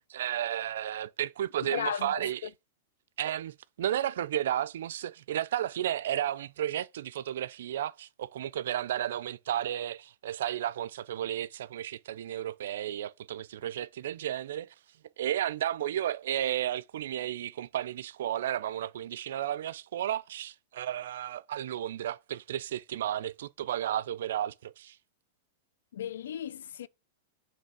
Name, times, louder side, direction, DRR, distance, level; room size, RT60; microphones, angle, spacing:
voice 1, 0.1-2.5 3.2-14.7 15.2-25.0, right 11 dB, 80° right, 0.4 m, -33 dB
voice 2, 1.6-2.2 25.9-26.9, left 9 dB, 85° left, 0.4 m, -35 dB
6.9 x 3.2 x 4.8 m
supercardioid pair, 140°, 0 cm